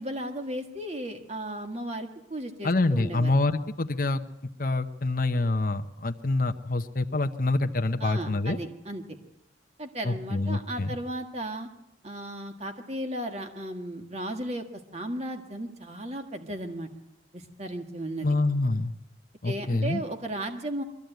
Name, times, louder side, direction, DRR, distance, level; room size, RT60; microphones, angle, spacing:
voice 1, 0.0-3.3 8.0-9.2 9.8-11.7 12.0-14.6 14.9-16.9 17.3-18.3 19.4-20.8, right 1 dB, 35° right, 5 dB, 1.7 m, -35 dB
voice 2, 2.6-4.2 4.6-8.6 10.0-11.0 18.2-18.9 19.4-20.0, left 2 dB, 50° left, 6 dB, 0.8 m, -26 dB
22.5 x 14.5 x 9.2 m, 0.87 s
head